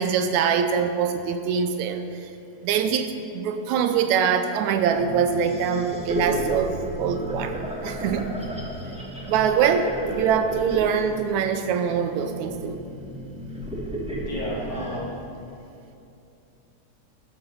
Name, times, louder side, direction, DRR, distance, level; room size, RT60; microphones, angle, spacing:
voice 1, 0.0-2.0 2.6-6.7 7.0-8.3 9.3-12.8, right 7 dB, 80° right, 8 dB, 2.0 m, -23 dB
sound 1, 4.9-15.0, right 1 dB, 5° right, 0.8 m, -33 dB
voice 2, 14.2-15.2, left 1 dB, 50° left, -4 dB, 3.3 m, -32 dB
12.0 x 11.5 x 5.4 m, 2.7 s
omnidirectional pair, 3.3 m